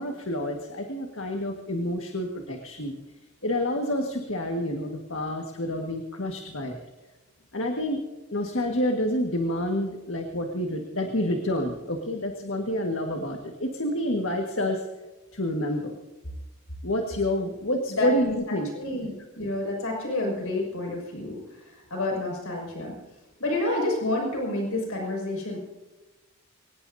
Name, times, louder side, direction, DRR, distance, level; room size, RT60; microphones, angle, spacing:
voice 1, 0.0-2.9 3.4-6.8 7.5-8.0 8.3-14.8 15.3-15.9 16.8-18.7, left 1 dB, 65° left, 2 dB, 1.8 m, -28 dB
voice 2, 18.7-22.9 23.4-25.6, left 2 dB, 85° left, 0 dB, 6.6 m, -29 dB
25.0 x 18.5 x 2.8 m, 1.1 s
head